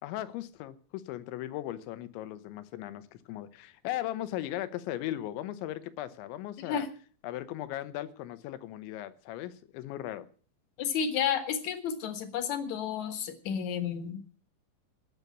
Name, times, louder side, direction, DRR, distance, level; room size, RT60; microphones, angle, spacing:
voice 1, 0.0-6.9 7.2-10.3, left 13 dB, 85° left, 13 dB, 3.3 m, -37 dB
voice 2, 10.8-14.2, left 7 dB, 60° left, 9 dB, 2.0 m, -31 dB
18.5 x 6.8 x 8.4 m, 0.44 s
omnidirectional pair, 5.1 m